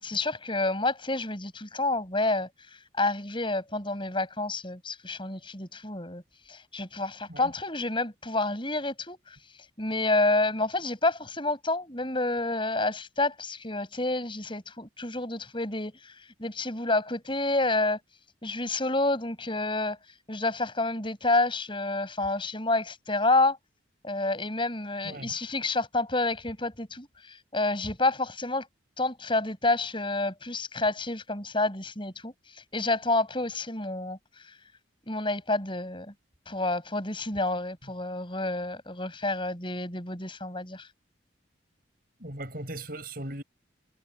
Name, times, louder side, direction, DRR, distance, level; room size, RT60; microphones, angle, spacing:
voice 1, 0.0-6.2 6.5-9.4 9.8-16.1 16.4-18.0 18.4-20.0 20.3-23.6 24.0-28.7 29.0-32.3 32.7-34.2 35.1-36.1 36.5-40.9, left 2 dB, 25° left, 7.9 m, -29 dB
voice 2, 42.2-43.4, right 1 dB, 50° right, 6.9 m, -38 dB
head